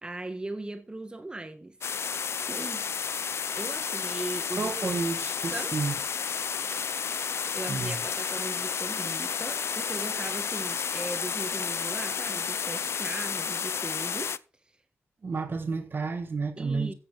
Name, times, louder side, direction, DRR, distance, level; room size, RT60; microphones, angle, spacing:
voice 1, 0.0-1.8 2.5-2.9 3.5-4.7 5.2-5.7 7.5-14.3 16.6-16.9, right 2 dB, 20° right, 2.0 m, -38 dB
sound 1, 1.8-14.4, left 6 dB, 65° left, 0.6 m, -31 dB
voice 2, 4.5-5.9 7.7-8.0 15.2-16.9, right 4 dB, 50° right, 1.6 m, -31 dB
15.5 x 7.7 x 5.1 m
wide cardioid pair, 105°, 5 cm